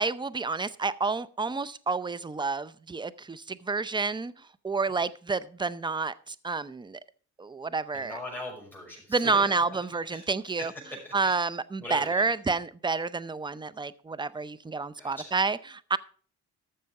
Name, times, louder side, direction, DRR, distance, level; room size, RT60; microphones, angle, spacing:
voice 1, 0.0-7.0 7.4-8.2 9.1-10.7 11.1-16.0, right 4 dB, 15° right, 17 dB, 0.6 m, -29 dB
voice 2, 7.9-9.8 10.1-10.3 10.6-11.4 11.8-12.3 15.0-15.3, left 1 dB, 5° left, -2 dB, 5.9 m, -41 dB
13.0 x 6.8 x 4.7 m, 0.42 s
cardioid pair, 90°, 30 cm